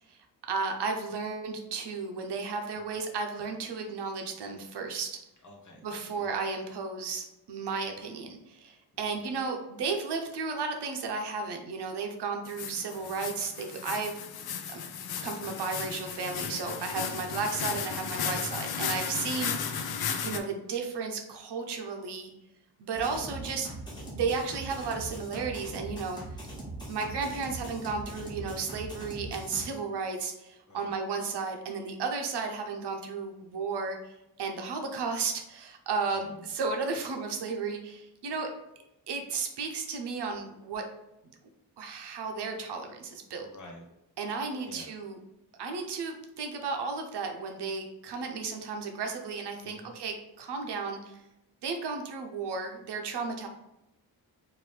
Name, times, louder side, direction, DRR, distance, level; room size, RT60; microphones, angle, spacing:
voice 1, 0.1-5.2 5.8-14.2 14.7-14.9 15.2-19.9 20.2-22.3 22.8-23.7 24.0-26.2 26.9-38.5 39.1-40.8 41.8-43.5 44.2-45.2 45.6-51.2 51.6-53.5, right 4 dB, 85° right, 3 dB, 0.7 m, -34 dB
voice 2, 5.4-6.3 8.9-9.3 12.9-13.1 30.7-30.9 36.0-36.5 43.4-43.8 44.6-44.9 49.6-49.9, left 1 dB, 45° left, 0 dB, 1.2 m, -52 dB
sound 1, 12.5-20.4, left 7 dB, 70° left, 0.6 m, -35 dB
sound 2, 22.9-29.6, right 1 dB, 10° left, 1.3 m, -41 dB
4.6 x 2.6 x 3.2 m, 0.90 s
wide cardioid pair, 125°, 39 cm